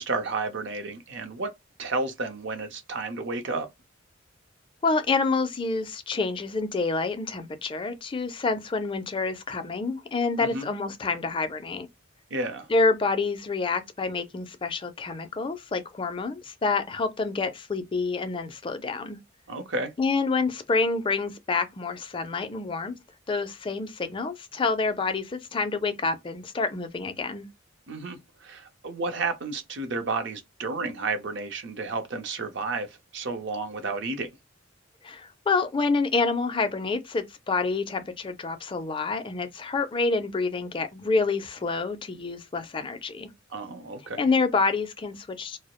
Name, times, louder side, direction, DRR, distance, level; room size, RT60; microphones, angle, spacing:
voice 1, 0.0-1.5 1.8-3.7 10.4-10.7 12.3-12.7 19.5-19.9 27.9-34.3 43.5-44.2, right 3 dB, 60° right, 0.6 m, -31 dB
voice 2, 4.8-11.9 12.7-19.2 20.0-22.9 23.3-27.5 35.0-43.3 44.2-45.6, left 4 dB, 25° left, 0.4 m, -27 dB
2.2 x 2.0 x 2.9 m
head